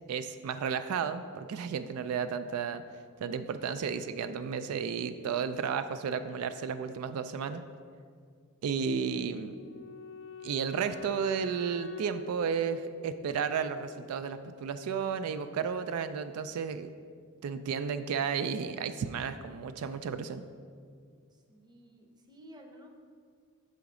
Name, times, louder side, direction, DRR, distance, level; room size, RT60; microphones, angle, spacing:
voice 1, 0.1-2.8 3.2-7.6 8.6-9.6 10.4-16.9 17.4-20.4, right 6 dB, 85° right, 10 dB, 0.3 m, -33 dB
Wind instrument woodwind instrument, 9.1-14.2, left 7 dB, 60° left, 0.3 m, -47 dB
voice 2, 21.3-22.9, equal, 20° right, 2 dB, 0.6 m, -53 dB
6.9 x 4.0 x 4.8 m, 2.1 s
head